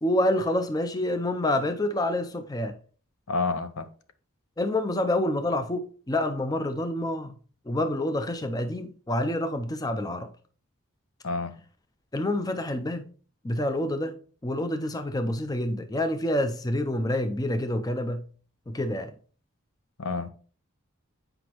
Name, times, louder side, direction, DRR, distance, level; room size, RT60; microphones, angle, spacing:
voice 1, 0.0-2.8 4.6-7.3 7.7-10.3 12.1-13.1 13.4-14.1 14.4-18.3 18.7-19.1, left 1 dB, 15° left, 0.4 m, -27 dB
voice 2, 3.3-3.9 11.2-11.5 20.0-20.3, left 3 dB, 85° left, 0.7 m, -29 dB
7.9 x 5.1 x 2.9 m
head